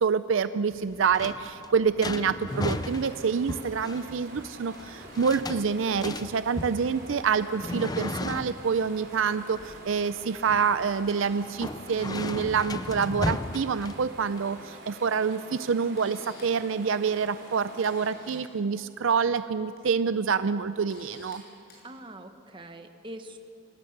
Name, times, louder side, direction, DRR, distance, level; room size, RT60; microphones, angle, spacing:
voice 1, 0.0-21.4, right 6 dB, 65° right, 13 dB, 0.5 m, -27 dB
sound 1, 0.7-14.4, left 2 dB, 20° left, 0.5 m, -36 dB
sound 2, 2.5-18.1, right 1 dB, 50° right, 3.9 m, -47 dB
Camera, 15.3-15.4 15.8-16.6 17.5-17.6 17.8-18.4 19.5-19.8 20.2-20.3 20.9-21.4 21.7-21.8, left 3 dB, 50° left, 6.7 m, -52 dB
voice 2, 21.8-23.4, right 1 dB, 25° right, 6 dB, 1.2 m, -43 dB
26.5 x 18.5 x 6.6 m, 2.8 s
head